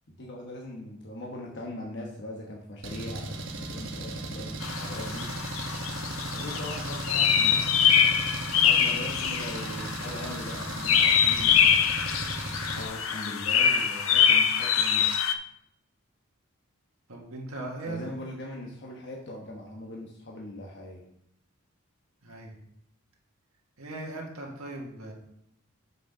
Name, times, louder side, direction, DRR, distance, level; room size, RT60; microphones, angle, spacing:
voice 1, 0.1-5.3 6.3-7.8 8.5-12.0 12.6-15.1 17.9-21.0, left 1 dB, 50° left, -1 dB, 1.1 m, -40 dB
Engine, 2.8-12.9, right 2 dB, 60° right, 1.1 m, -37 dB
sound 1, 4.6-15.3, left 8 dB, 70° left, 0.5 m, -24 dB
voice 2, 17.1-18.0 22.2-22.6 23.8-25.1, right 2 dB, 80° right, 0 dB, 1.6 m, -38 dB
6.3 x 5.6 x 5.4 m, 0.74 s
head